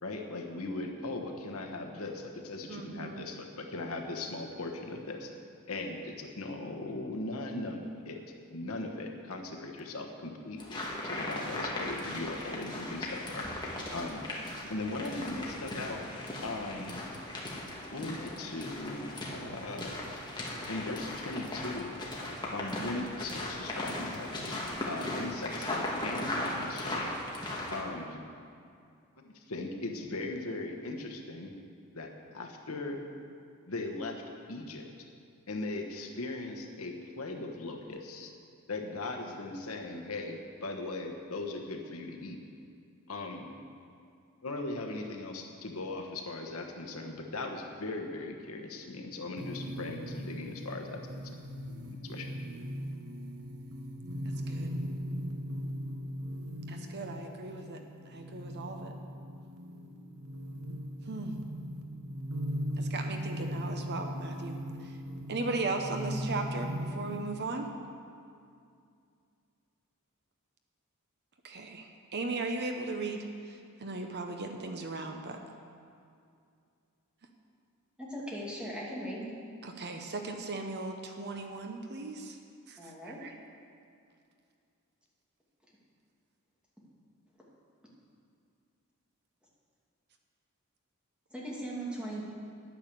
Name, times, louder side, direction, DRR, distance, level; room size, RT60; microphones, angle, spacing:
voice 1, 0.0-5.3 5.7-8.2 8.5-13.5 13.9-14.2 14.7-16.0 16.4-17.0 17.9-19.9 20.7-21.9 22.5-27.1 27.7-28.2 29.2-31.5 31.9-33.0 33.7-34.2 34.5-34.8 35.5-38.3 38.7-42.4 43.1-43.5 44.4-51.0 51.2-51.3 51.9-52.4, left 2 dB, 70° left, 3 dB, 1.2 m, -39 dB
voice 2, 2.7-3.2 54.5-54.8 56.7-58.9 61.1-61.4 62.8-65.0 65.3-67.7 71.4-75.4 79.6-82.4 82.7-83.3, right 3 dB, 50° right, 4 dB, 0.9 m, -37 dB
sound 1, 10.6-27.8, left 1 dB, 20° left, 1.7 m, -38 dB
sound 2, 49.4-67.4, equal, 70° right, 1.1 m, -38 dB
voice 3, 78.0-79.3 82.8-83.2 91.3-92.2, right 1 dB, 5° right, -5 dB, 2.4 m, -38 dB
10.5 x 9.3 x 6.9 m, 2.4 s
head